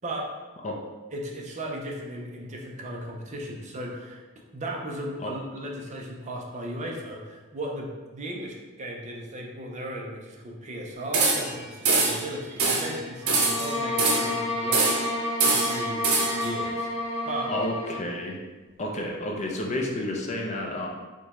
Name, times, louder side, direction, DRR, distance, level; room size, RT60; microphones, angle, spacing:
voice 1, 0.0-0.3 1.1-4.2 4.5-16.0 16.3-17.5, right 1 dB, 35° right, 0 dB, 0.5 m, -36 dB
sound 1, 11.1-11.6 11.8-12.2 12.6-12.9 13.3-14.4 14.7-15.1 15.4-16.5, right 3 dB, 80° right, 0.7 m, -24 dB
sound 2, 13.2-18.1, left 2 dB, 70° left, 1.1 m, -30 dB
voice 2, 17.5-18.4 18.8-20.9, left 1 dB, 30° left, 0 dB, 0.5 m, -30 dB
4.9 x 2.2 x 4.1 m, 1.3 s
head